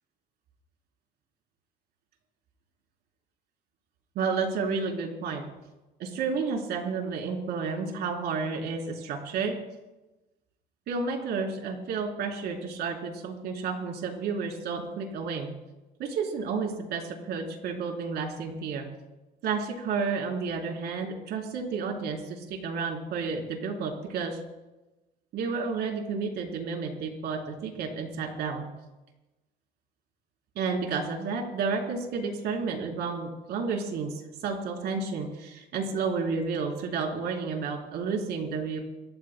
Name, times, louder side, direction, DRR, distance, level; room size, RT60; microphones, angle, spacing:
voice 1, 4.2-5.4 6.0-9.5 10.9-15.5 16.0-18.9 19.4-24.4 25.3-28.7 30.6-38.8, right 5 dB, 75° right, 1 dB, 3.9 m, -31 dB
28.5 x 14.5 x 2.3 m, 1.0 s
cardioid pair, 110°, 17 cm